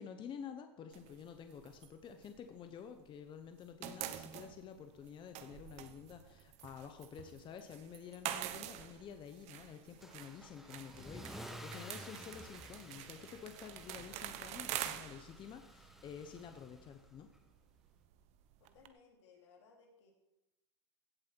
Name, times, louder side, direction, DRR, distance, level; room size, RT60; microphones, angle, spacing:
voice 1, 0.0-17.3, left 7 dB, 35° left, 8 dB, 0.9 m, -50 dB
sound 1, 0.9-3.2 3.4-18.9, right 12 dB, 50° right, 1.0 m, -47 dB
Car / Engine starting / Accelerating revving vroom, 10.0-17.1, equal, ahead, 1.4 m, -53 dB
voice 2, 18.6-20.1, left 5 dB, 80° left, 1 dB, 3.1 m, -63 dB
16.0 x 7.5 x 4.6 m, 0.94 s
hypercardioid pair, 105°, 14 cm